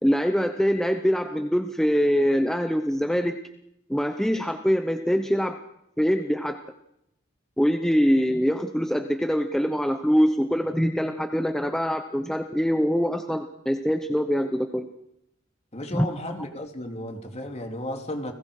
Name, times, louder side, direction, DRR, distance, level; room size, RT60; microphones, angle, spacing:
voice 1, 0.0-3.4 3.9-5.5 6.0-6.6 7.6-14.9 15.9-16.1, equal, 5° left, 6 dB, 0.9 m, -23 dB
voice 2, 15.7-18.3, left 1 dB, 35° left, 4 dB, 2.7 m, -34 dB
30.0 x 20.0 x 4.9 m, 0.80 s
head